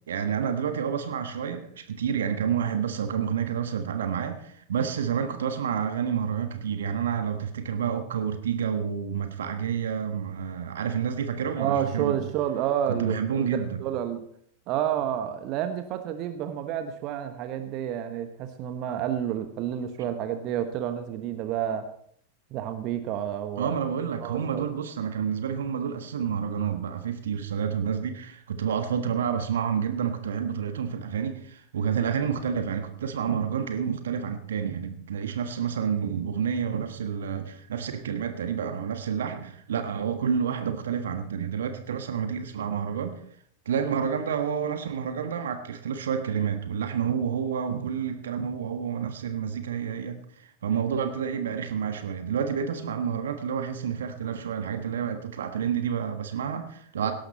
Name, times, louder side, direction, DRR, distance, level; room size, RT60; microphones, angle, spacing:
voice 1, 0.1-12.2 12.9-13.8 20.0-20.1 23.6-43.1 43.6-57.1, right 7 dB, 65° right, 8 dB, 1.4 m, -29 dB
voice 2, 11.6-14.2 14.7-21.9 22.5-23.7 24.2-24.7, right 10 dB, 40° right, 9 dB, 1.3 m, -30 dB
17.5 x 11.5 x 4.3 m, 0.63 s
figure-of-eight pair, 90°, 0 cm